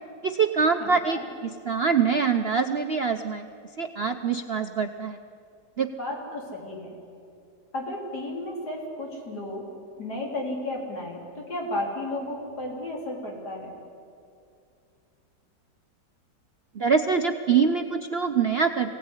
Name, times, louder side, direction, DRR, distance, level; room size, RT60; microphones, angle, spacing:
voice 1, 0.2-3.5 3.8-5.2 5.8-5.9 16.7-19.0, right 5 dB, 50° right, 6 dB, 0.7 m, -24 dB
voice 2, 0.8-1.3 6.0-6.9 7.7-9.6 10.0-13.7, left 1 dB, 60° left, -2 dB, 4.2 m, -33 dB
23.5 x 17.5 x 9.7 m, 2.4 s
omnidirectional pair, 1.9 m